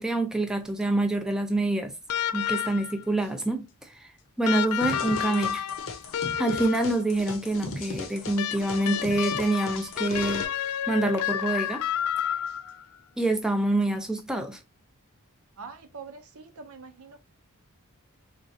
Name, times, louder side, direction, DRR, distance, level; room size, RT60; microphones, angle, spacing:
voice 1, 0.0-1.9 2.3-3.7 4.0-4.1 4.4-5.6 6.4-10.5 10.9-11.8 13.2-14.6, right 2 dB, 5° right, 0.5 m, -26 dB
sound 1, 2.1-3.0 4.4-7.0 8.4-12.8 14.2-14.3, left 9 dB, 80° left, 0.4 m, -30 dB
sound 2, 4.8-10.4, left 3 dB, 60° left, 0.7 m, -37 dB
voice 2, 15.6-17.2, right 5 dB, 70° right, 0.7 m, -44 dB
3.6 x 3.1 x 2.7 m
head